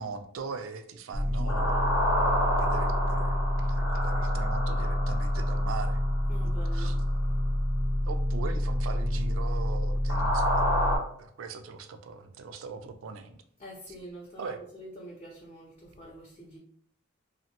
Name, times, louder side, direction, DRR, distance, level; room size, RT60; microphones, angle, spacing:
voice 1, 0.0-2.0 2.4-6.0 6.4-6.9 8.1-10.7 11.2-13.4 14.4-14.6, right 4 dB, 80° right, 0.4 m, -40 dB
sound 1, 1.1-11.0, equal, 75° left, 0.8 m, -26 dB
voice 2, 6.3-7.3 13.6-16.6, right 1 dB, 30° left, 0.5 m, -46 dB
3.0 x 2.1 x 2.8 m
head